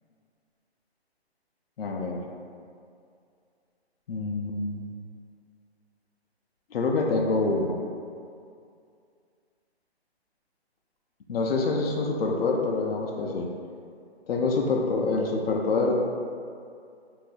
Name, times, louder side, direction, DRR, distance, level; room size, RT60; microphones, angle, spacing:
voice 1, 1.8-2.2 4.1-4.9 6.7-7.8 11.3-13.5 14.3-16.0, left 3 dB, 65° left, 0 dB, 0.5 m, -26 dB
3.4 x 2.6 x 2.4 m, 2.3 s
hypercardioid pair, 155°, 33 cm